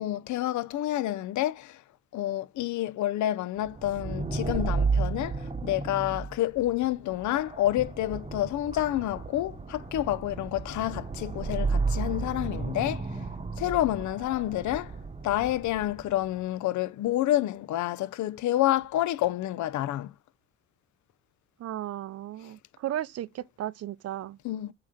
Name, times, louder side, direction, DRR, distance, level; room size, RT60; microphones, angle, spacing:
voice 1, 0.0-1.8 2.1-13.1 13.6-14.9 15.2-20.1 24.4-24.7, left 14 dB, 70° left, 0.6 m, -29 dB
sound 1, 3.6-16.2, right 4 dB, 20° right, 0.9 m, -33 dB
voice 2, 21.6-24.4, right 12 dB, 55° right, 0.5 m, -35 dB
7.3 x 2.9 x 4.9 m
cardioid pair, 90°, 30 cm